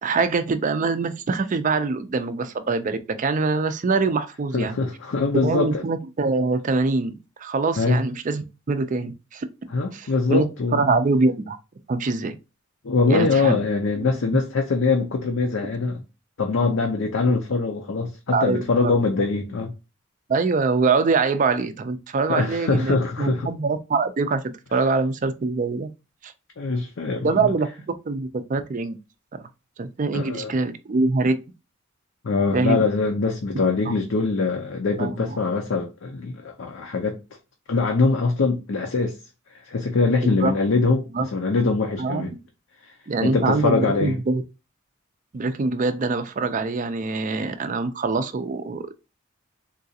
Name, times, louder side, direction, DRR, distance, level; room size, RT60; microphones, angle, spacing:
voice 1, 0.0-4.8 5.4-9.5 9.9-11.6 11.9-12.4 13.1-13.6 14.0-14.1 18.3-19.0 20.3-24.4 24.7-25.9 26.2-26.3 27.2-29.0 29.3-29.5 29.8-31.3 32.5-32.8 33.9-34.0 35.0-35.4 40.2-40.5 41.1-41.3 42.0-42.3 43.1-44.4 45.3-48.8, right 3 dB, 40° right, 0.4 m, -24 dB
voice 2, 4.5-5.8 7.8-8.0 9.7-10.9 12.8-16.0 16.4-19.7 22.3-23.5 26.6-27.4 30.1-30.5 32.2-37.2 37.7-39.2 39.6-42.3 43.2-44.2, left 3 dB, 65° left, 0.5 m, -23 dB
3.8 x 2.4 x 2.7 m
head